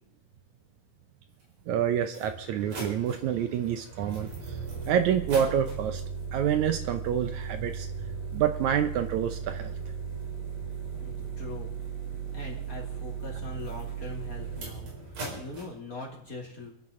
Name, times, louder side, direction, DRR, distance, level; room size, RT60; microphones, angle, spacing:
sound 1, 1.4-1.5 2.0-15.7, right 6 dB, 90° right, 6.0 m, -37 dB
voice 1, 1.7-4.3 4.9-6.0 6.3-7.9 8.3-9.8, right 9 dB, 75° right, 9 dB, 2.0 m, -27 dB
voice 2, 11.0-11.7 12.3-16.7, left 3 dB, 30° left, -1 dB, 2.9 m, -42 dB
28.0 x 11.0 x 3.7 m, 0.75 s
omnidirectional pair, 3.7 m